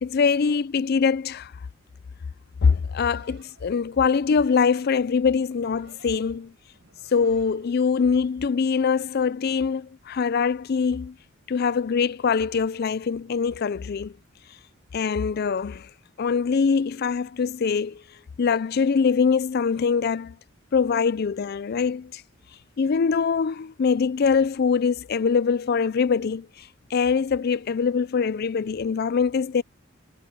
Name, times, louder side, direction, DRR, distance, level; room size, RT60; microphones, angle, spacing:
voice 1, 0.0-1.5 2.6-6.5 7.1-11.2 11.5-14.1 14.9-15.9 16.2-18.0 18.4-20.4 20.7-22.2 22.8-29.6, left 5 dB, 50° left, 0.4 m, -23 dB
sound 1, 2.7-8.3, right 3 dB, 60° right, 4.8 m, -57 dB
head